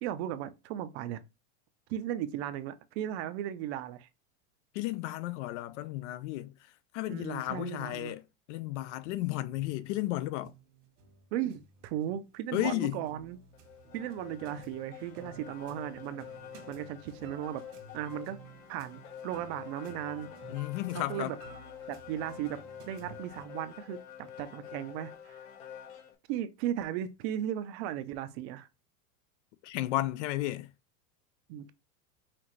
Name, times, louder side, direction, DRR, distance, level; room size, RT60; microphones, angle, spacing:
voice 1, 0.0-1.2 1.9-4.1 7.1-8.1 11.3-13.4 13.9-16.2 16.7-17.6 17.9-20.3 20.9-21.4 21.9-22.6 22.9-25.5 26.3-28.7 31.5-31.7, right 11 dB, 50° right, 0.6 m, -36 dB
voice 2, 4.7-6.5 6.9-8.2 8.5-10.5 12.5-13.0 20.5-21.3 29.6-30.7, left 16 dB, 55° left, 0.5 m, -33 dB
sound 1, 9.0-23.5, right 4 dB, 85° right, 1.7 m, -54 dB
sound 2, 13.5-26.1, left 9 dB, 75° left, 1.6 m, -48 dB
5.8 x 2.5 x 3.1 m
supercardioid pair, 155°, 42 cm